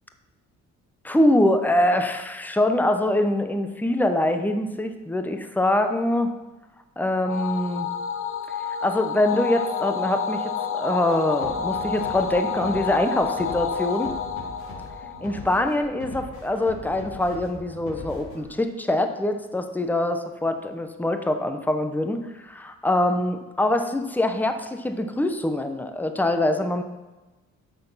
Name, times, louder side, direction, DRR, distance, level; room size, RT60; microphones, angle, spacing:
voice 1, 1.0-6.3 7.0-7.9 8.8-14.1 15.2-26.8, left 1 dB, 5° left, 7 dB, 0.9 m, -24 dB
sound 1, 7.3-15.9, left 6 dB, 45° left, 0.9 m, -29 dB
sound 2, 11.0-18.5, left 1 dB, 75° left, 3.9 m, -41 dB
8.8 x 6.8 x 5.7 m, 1.1 s
cardioid pair, 90°, 30 cm